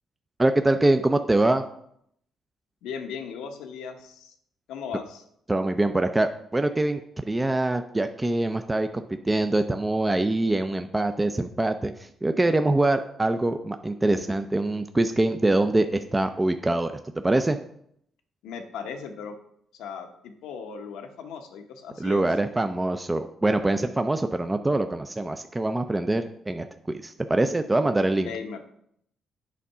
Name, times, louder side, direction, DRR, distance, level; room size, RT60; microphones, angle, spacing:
voice 1, 0.4-1.6 5.5-17.6 22.0-28.3, right 2 dB, 15° right, 8 dB, 0.4 m, -24 dB
voice 2, 2.8-4.3 4.7-5.2 18.4-19.4 19.7-22.2 28.2-28.7, left 6 dB, 90° left, 6 dB, 0.9 m, -37 dB
8.4 x 3.7 x 5.5 m, 0.71 s
cardioid pair, 90°, 0 cm